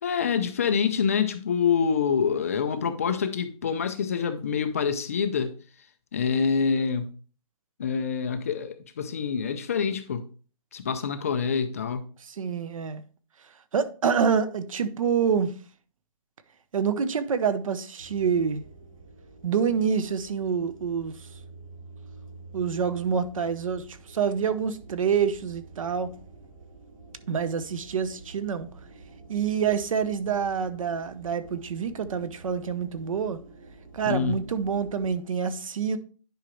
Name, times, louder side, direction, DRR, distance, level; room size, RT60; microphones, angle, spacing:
voice 1, 0.0-5.5 6.1-7.1 7.8-10.2 10.7-12.1 34.0-34.4, left 6 dB, 25° left, 0.4 m, -26 dB
voice 2, 12.4-13.0 13.7-15.5 16.7-18.6 19.4-21.1 22.5-26.1 27.3-28.7 29.3-33.4 33.9-36.0, right 6 dB, 70° right, 0.8 m, -27 dB
sound 1, 18.0-35.1, right 3 dB, 40° right, 2.1 m, -49 dB
10.5 x 4.8 x 3.0 m
hypercardioid pair, 175°, 18 cm